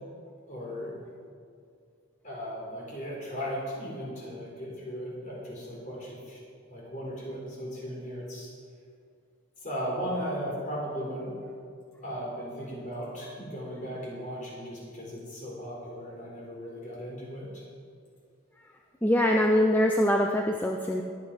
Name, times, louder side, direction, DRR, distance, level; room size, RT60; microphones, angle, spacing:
voice 1, 0.5-0.9 2.2-6.4 6.7-8.5 9.6-11.3 12.0-17.6, equal, 35° left, -3 dB, 4.0 m, -37 dB
voice 2, 19.0-21.0, left 1 dB, 10° left, 1 dB, 0.6 m, -23 dB
22.0 x 8.3 x 5.0 m, 2.3 s
head